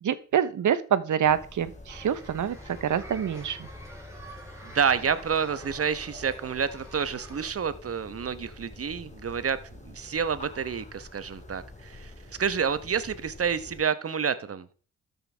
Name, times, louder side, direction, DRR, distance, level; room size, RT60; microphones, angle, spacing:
voice 1, 0.0-3.7, right 9 dB, 60° right, 15 dB, 1.0 m, -26 dB
sound 1, 1.2-13.8, left 1 dB, 20° left, 2.2 m, -47 dB
sound 2, 1.9-7.5, right 1 dB, 10° right, 4.5 m, -47 dB
voice 2, 4.6-9.6 9.8-12.1 12.4-14.7, right 6 dB, 45° right, 13 dB, 1.1 m, -29 dB
13.0 x 5.6 x 3.4 m, 0.40 s
supercardioid pair, 45°, 34 cm